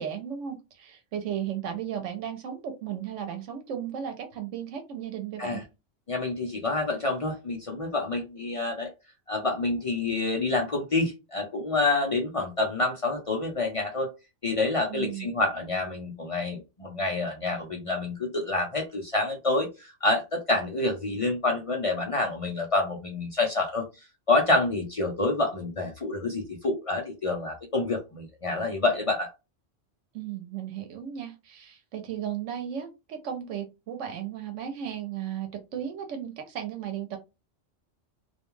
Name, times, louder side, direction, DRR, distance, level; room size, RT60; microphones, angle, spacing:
voice 1, 0.0-5.6 14.9-15.4 30.1-37.2, right 9 dB, 85° right, 5 dB, 1.0 m, -35 dB
voice 2, 6.1-8.9 9.3-14.1 14.4-23.8 24.3-29.3, left 2 dB, 45° left, 1 dB, 0.4 m, -27 dB
2.4 x 2.2 x 3.0 m, 0.26 s
omnidirectional pair, 1.2 m